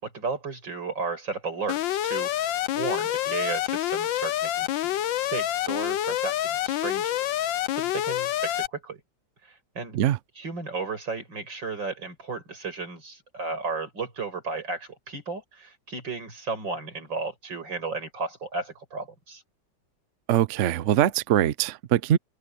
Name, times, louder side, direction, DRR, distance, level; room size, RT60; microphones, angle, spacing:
voice 1, 0.0-4.7 5.2-9.0 9.4-10.0 10.4-19.4, right 4 dB, 90° right, 6.7 m, -34 dB
Alarm, 1.7-8.7, left 12 dB, 90° left, 1.5 m, -27 dB
voice 2, 20.3-22.2, right 11 dB, 65° right, 0.7 m, -22 dB
open air
omnidirectional pair, 2.0 m